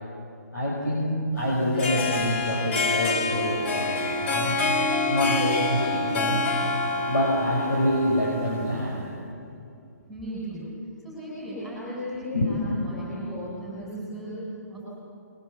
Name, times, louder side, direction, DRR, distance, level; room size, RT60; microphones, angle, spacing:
voice 1, 0.5-4.6 5.1-6.4 7.1-9.1 12.3-12.5, left 1 dB, 85° left, -3 dB, 6.4 m, -26 dB
Harp, 1.6-9.0, left 3 dB, 40° left, 3.2 m, -27 dB
voice 2, 10.1-10.7 11.0-14.3 14.7-14.9, equal, ahead, -8 dB, 7.9 m, -36 dB
28.5 x 23.5 x 7.4 m, 2.6 s
hypercardioid pair, 140°, 9 cm